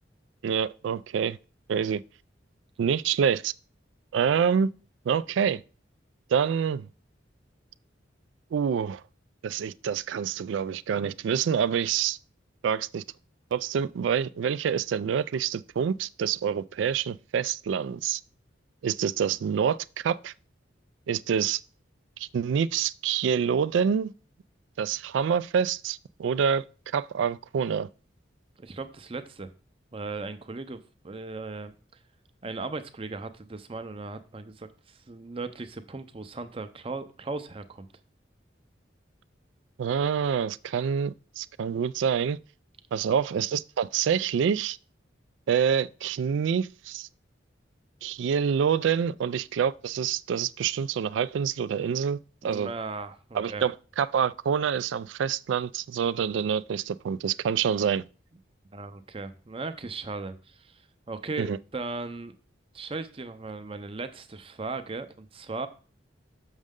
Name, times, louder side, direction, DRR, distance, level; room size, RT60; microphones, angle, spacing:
voice 1, 0.4-1.4 1.7-2.0 2.8-3.5 4.1-4.7 5.1-5.6 6.3-6.9 8.5-9.0 9.4-12.2 12.6-13.0 13.5-18.2 18.8-19.8 20.0-20.3 21.1-21.6 22.2-24.1 24.8-26.6 26.9-27.9 39.8-42.4 42.9-44.8 45.5-47.1 48.0-52.7 53.3-58.0 61.4-61.6, right 7 dB, 75° right, 0.3 m, -27 dB
voice 2, 28.6-29.5 29.9-31.7 32.4-37.9 52.4-53.6 58.7-60.7 61.1-62.3 62.7-65.7, right 3 dB, 30° right, 0.6 m, -37 dB
6.4 x 6.4 x 3.6 m
head